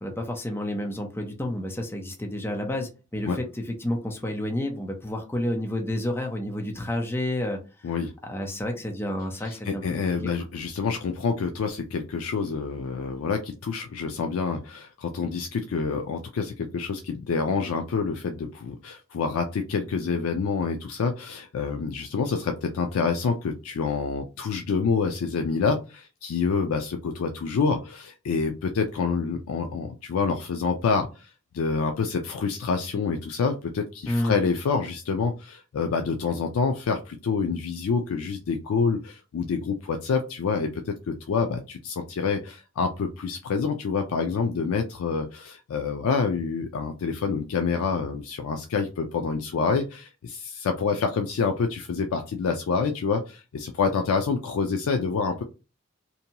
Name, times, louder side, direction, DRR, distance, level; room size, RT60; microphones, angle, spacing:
voice 1, 0.0-7.6 8.3-9.8 10.2-10.3 34.1-34.4, left 1 dB, 10° left, 2 dB, 0.5 m, -30 dB
voice 2, 9.4-55.4, left 5 dB, 80° left, 5 dB, 0.4 m, -27 dB
2.7 x 2.2 x 2.7 m, 0.31 s
head